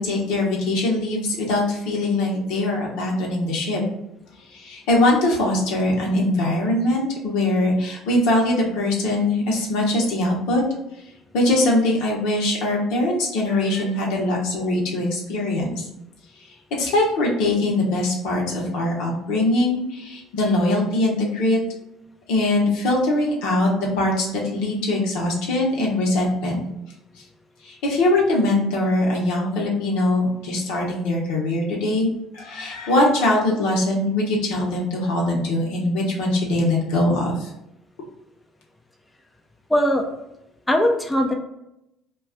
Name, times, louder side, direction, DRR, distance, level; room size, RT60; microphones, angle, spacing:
voice 1, 0.0-3.8 4.5-10.6 11.3-15.8 16.8-21.6 22.3-26.7 27.7-37.5, left 1 dB, 70° left, -2 dB, 0.8 m, -22 dB
voice 2, 39.7-40.0 40.7-41.3, equal, 10° left, 2 dB, 0.4 m, -19 dB
2.3 x 2.2 x 3.6 m, 0.85 s
hypercardioid pair, 60°, 0 cm